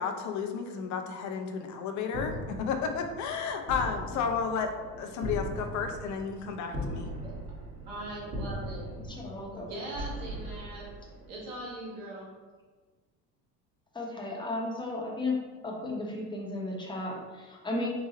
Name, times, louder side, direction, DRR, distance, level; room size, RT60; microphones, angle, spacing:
voice 1, 0.0-7.1, left 6 dB, 40° left, 5 dB, 0.5 m, -32 dB
sound 1, 2.1-11.6, equal, 45° right, 1.4 m, -39 dB
voice 2, 7.8-8.9 9.5-10.9 11.3-12.3, right 1 dB, 60° right, -5 dB, 1.4 m, -40 dB
voice 3, 9.1-9.7 13.9-15.3 15.6-17.9, left 2 dB, 10° left, -2 dB, 0.8 m, -34 dB
3.8 x 2.3 x 2.9 m, 1.3 s
hypercardioid pair, 65°, 49 cm